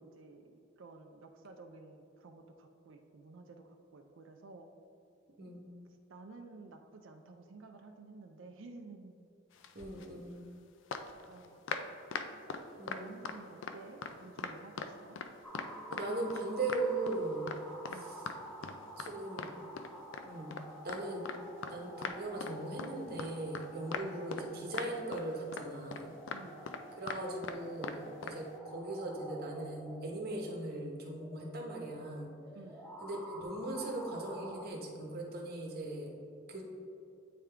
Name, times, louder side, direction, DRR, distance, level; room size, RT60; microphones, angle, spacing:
voice 1, 0.0-4.7 6.1-9.3 11.3-12.0 12.9-15.2 17.9-18.2 24.0-24.3 26.3-27.0 32.5-32.9, right 3 dB, 70° right, 4 dB, 0.4 m, -53 dB
sound 1, 9.6-10.2 10.9-13.8 14.0-15.3 15.5-16.4 16.7-17.2 17.5-17.6 17.9-18.0 18.3-18.4 18.6-19.5 19.8-21.7 22.0-22.5 22.8-22.9 23.2-23.7 23.9-24.5 24.7-25.2 25.5-25.7 25.9-27.6 27.8-28.0 28.2-28.4, left 5 dB, 65° left, 0.4 m, -40 dB
voice 2, 9.7-10.4 12.7-13.2 15.9-17.5 17.9-18.1 19.0-19.5 20.2-20.5 20.8-21.3 21.7-26.1 27.0-28.5 28.7-32.3 33.0-36.1 36.5-36.6, right 2 dB, 50° right, 0 dB, 0.9 m, -39 dB
sound 2, 15.4-34.7, equal, 5° left, 0.4 m, -50 dB
8.5 x 3.6 x 3.3 m, 2.6 s
head